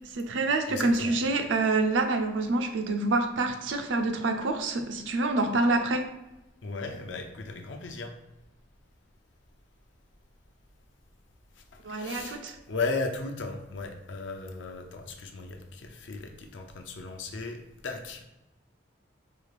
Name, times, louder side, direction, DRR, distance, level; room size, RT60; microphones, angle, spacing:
voice 1, 0.0-6.1 11.8-12.6, right 2 dB, 85° right, 6 dB, 0.5 m, -27 dB
voice 2, 0.7-1.1 6.6-8.1 11.6-12.4 12.7-18.2, left 3 dB, 85° left, 4 dB, 0.6 m, -36 dB
4.8 x 2.4 x 3.3 m, 0.96 s
head